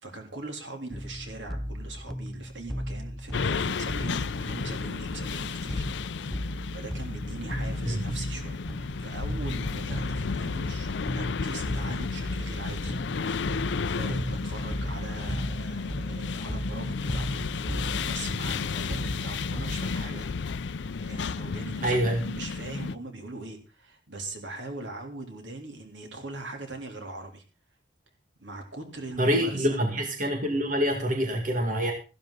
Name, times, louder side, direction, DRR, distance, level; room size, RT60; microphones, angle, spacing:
voice 1, 0.0-5.8 6.7-13.3 13.9-20.3 21.0-27.4 28.4-29.8, right 2 dB, 75° right, 3 dB, 3.5 m, -41 dB
sound 1, 0.9-20.0, equal, ahead, 0.6 m, -36 dB
sound 2, 3.3-23.0, left 5 dB, 70° left, 0.5 m, -32 dB
voice 2, 21.8-22.2 29.2-31.9, equal, 45° right, 3 dB, 2.2 m, -26 dB
14.5 x 12.5 x 4.1 m, 0.33 s
head